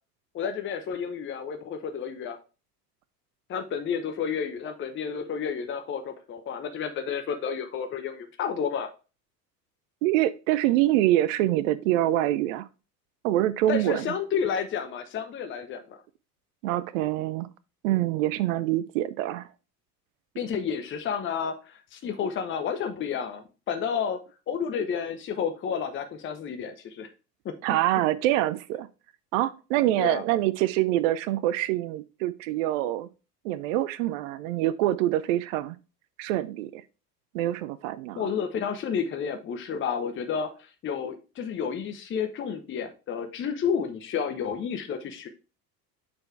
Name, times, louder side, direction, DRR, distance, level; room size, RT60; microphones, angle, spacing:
voice 1, 0.3-2.4 3.5-8.9 13.7-16.0 20.4-24.2 24.5-27.1 27.4-27.5 30.0-30.2 38.2-45.3, left 7 dB, 25° left, 0.8 m, -31 dB
voice 2, 10.0-12.7 13.2-14.1 16.6-17.5 17.8-19.5 27.6-28.9 29.3-33.1 33.4-35.8 36.2-36.8 37.3-38.2, right 14 dB, 55° right, 0.5 m, -25 dB
6.7 x 4.4 x 3.2 m
figure-of-eight pair, 70°, 49 cm